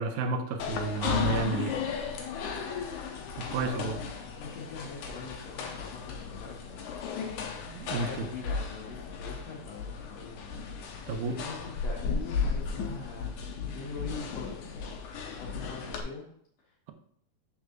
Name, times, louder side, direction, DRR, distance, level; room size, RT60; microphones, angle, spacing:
voice 1, 0.0-1.8 3.4-4.0 7.7-8.3 11.1-11.4, right 4 dB, 85° right, 6 dB, 2.2 m, -31 dB
sound 1, 0.6-16.0, left 6 dB, 85° left, 2.2 m, -35 dB
voice 2, 3.6-4.1 4.4-6.9 7.9-10.5 11.3-11.6 11.8-14.7 15.3-16.2 16.6-16.9, left 4 dB, 65° left, -6 dB, 2.7 m, -43 dB
7.8 x 6.8 x 2.5 m, 0.66 s
omnidirectional pair, 3.4 m